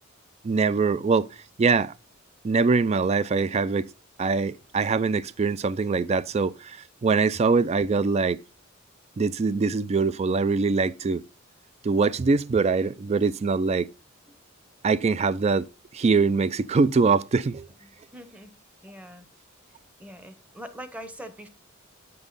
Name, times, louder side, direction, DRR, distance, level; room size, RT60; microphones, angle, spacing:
voice 1, 0.4-1.3 1.6-1.9 2.4-3.9 4.2-8.4 9.2-11.2 11.8-13.9 14.8-15.7 15.9-17.7, right 4 dB, 30° right, 0.3 m, -23 dB
voice 2, 17.8-18.5 18.8-19.2 20.0-21.5, equal, 5° right, 0.9 m, -42 dB
9.0 x 5.4 x 3.9 m
head